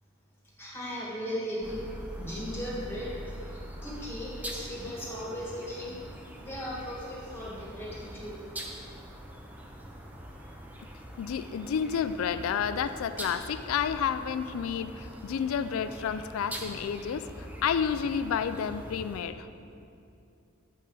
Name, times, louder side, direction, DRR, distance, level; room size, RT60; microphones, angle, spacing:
voice 1, 0.6-1.8 2.2-6.0 6.4-8.3 10.4-10.5, equal, 10° left, -6 dB, 1.5 m, -37 dB
sound 1, 1.6-19.2, equal, 10° right, 0.5 m, -43 dB
voice 2, 11.2-19.5, left 7 dB, 85° left, 12 dB, 0.3 m, -30 dB
7.5 x 5.4 x 5.3 m, 2.6 s
head